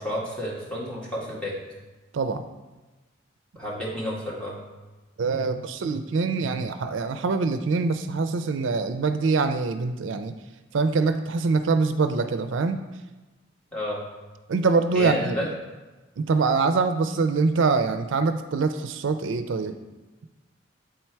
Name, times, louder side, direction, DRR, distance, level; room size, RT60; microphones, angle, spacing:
voice 1, 0.0-1.5 3.6-4.6 13.7-14.0 14.9-15.5, equal, 5° left, -6 dB, 1.8 m, -30 dB
voice 2, 5.2-10.3 10.7-12.8 14.5-15.4 16.2-19.8, right 4 dB, 80° right, 9 dB, 0.4 m, -24 dB
7.9 x 4.4 x 4.5 m, 1.2 s
head